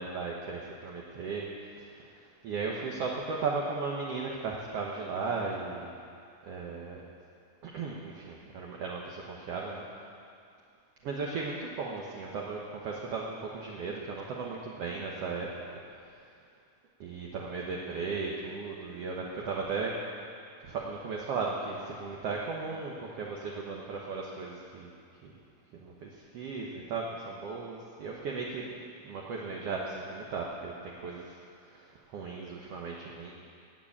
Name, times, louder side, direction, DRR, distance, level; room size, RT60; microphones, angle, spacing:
voice 1, 0.0-1.5 1.8-5.9 6.4-7.0 7.6-9.8 11.0-15.5 17.0-20.0 20.6-24.9 25.2-25.3 25.8-28.7 29.0-31.4 31.6-33.3, right 4 dB, 60° right, -2 dB, 1.8 m, -36 dB
17.5 x 6.9 x 8.6 m, 2.4 s
omnidirectional pair, 3.6 m